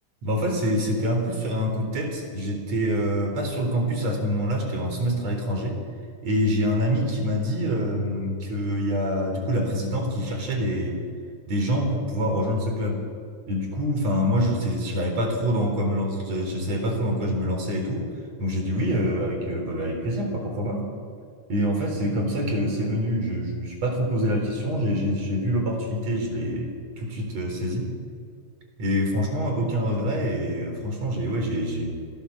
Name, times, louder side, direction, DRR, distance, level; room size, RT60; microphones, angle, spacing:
voice 1, 0.2-5.8 6.2-11.0 11.5-13.1 13.5-18.1 18.4-20.9 21.5-27.9 28.8-31.9, equal, 65° right, 3 dB, 5.2 m, -26 dB
28.5 x 16.0 x 7.3 m, 2.1 s
omnidirectional pair, 3.3 m